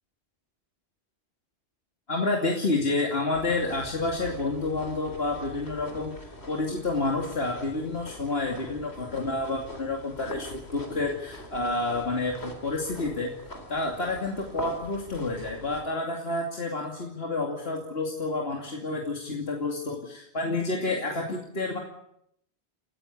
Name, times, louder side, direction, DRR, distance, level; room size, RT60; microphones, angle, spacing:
voice 1, 2.1-13.3 13.7-21.8, left 2 dB, 75° left, 0 dB, 3.0 m, -29 dB
sound 1, 3.3-15.8, left 1 dB, 90° left, 4.0 m, -43 dB
30.0 x 15.0 x 8.5 m, 0.75 s
omnidirectional pair, 1.1 m